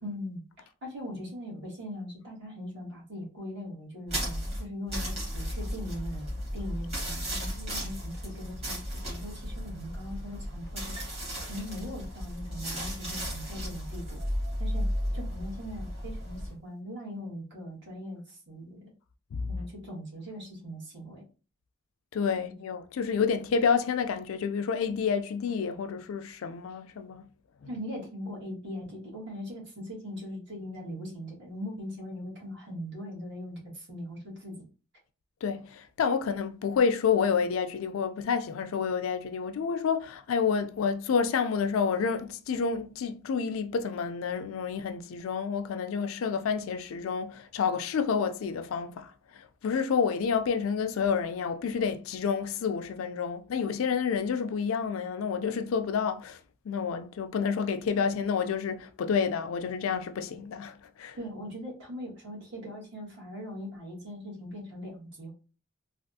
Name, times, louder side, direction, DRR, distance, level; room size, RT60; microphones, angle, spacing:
voice 1, 0.0-11.0 11.5-14.2 14.6-14.9 15.1-18.9 19.5-21.2 22.4-22.5 27.6-34.7 61.2-65.3, equal, 55° right, 1.7 m, -40 dB
sound 1, 4.1-16.5, equal, 30° right, 1.5 m, -34 dB
voice 2, 22.1-27.2 35.4-49.1 49.6-56.4 56.7-61.2, left 6 dB, 70° left, 0.4 m, -29 dB
3.3 x 2.4 x 2.6 m
head